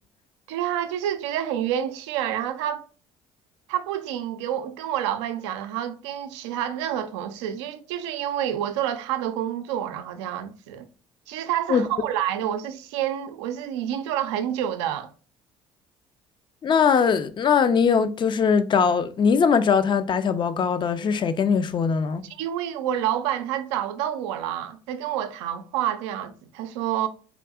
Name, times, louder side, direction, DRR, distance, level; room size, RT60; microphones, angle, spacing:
voice 1, 0.5-2.8 3.7-10.9 11.3-15.1 22.2-27.1, right 11 dB, 85° right, 0.4 m, -28 dB
voice 2, 16.6-22.2, left 6 dB, 35° left, 0.4 m, -21 dB
3.6 x 2.6 x 2.3 m
hypercardioid pair, 65°, 14 cm